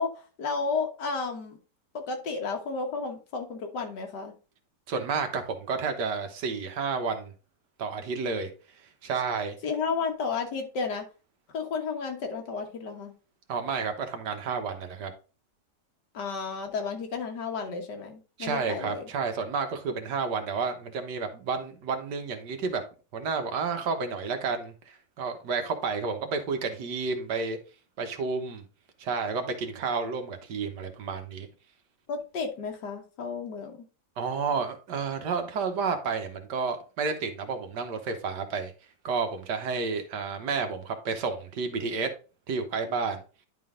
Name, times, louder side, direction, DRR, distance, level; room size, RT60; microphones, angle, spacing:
voice 1, 0.0-1.6 1.9-4.3 9.6-11.0 11.5-13.1 16.1-19.1 32.1-33.8, left 4 dB, 75° left, 1.9 m, -32 dB
voice 2, 4.9-7.3 7.8-8.5 9.0-9.6 13.5-15.1 18.4-22.8 23.1-27.6 28.0-28.6 29.0-31.5 34.2-38.7 39.0-42.1 42.5-43.2, right 5 dB, 75° right, 1.7 m, -31 dB
10.5 x 3.8 x 3.7 m
omnidirectional pair, 1.9 m